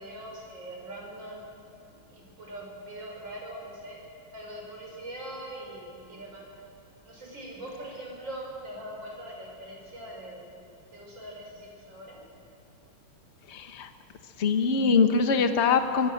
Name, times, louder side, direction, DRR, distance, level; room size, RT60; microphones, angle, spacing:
voice 1, 0.0-1.5 1.9-4.0 4.3-6.4 7.0-10.5 10.9-12.2, right 1 dB, 55° right, -2 dB, 7.2 m, -42 dB
voice 2, 13.5-13.9 14.4-16.1, left 5 dB, 35° left, 7 dB, 1.3 m, -23 dB
24.5 x 22.5 x 6.6 m, 3.0 s
omnidirectional pair, 2.4 m